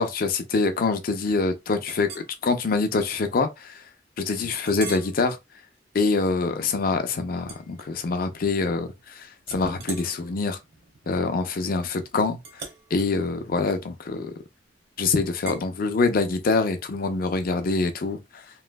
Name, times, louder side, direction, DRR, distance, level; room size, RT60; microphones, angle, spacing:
voice 1, 0.0-3.8 4.2-5.4 5.9-10.6 11.1-12.6 12.9-14.3 15.0-18.4, left 3 dB, 50° left, 0.5 m, -25 dB
Chink clink, 1.8-2.3 2.8-3.0 3.5-3.6 4.5-5.2 5.7-5.9 7.4-8.4 8.7-9.1 9.4-14.5 15.5-15.7, right 4 dB, 60° right, 0.9 m, -42 dB
3.0 x 2.6 x 2.2 m
head